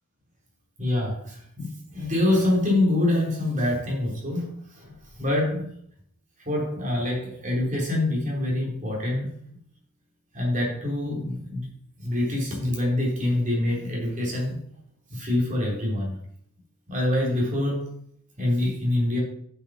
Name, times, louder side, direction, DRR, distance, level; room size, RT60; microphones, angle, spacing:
voice 1, 0.8-5.7 6.4-9.3 10.3-11.7 12.0-14.6 15.1-16.2 16.9-17.9 18.4-19.2, left 1 dB, 35° right, -2 dB, 3.3 m, -25 dB
7.9 x 6.4 x 6.1 m, 0.68 s
head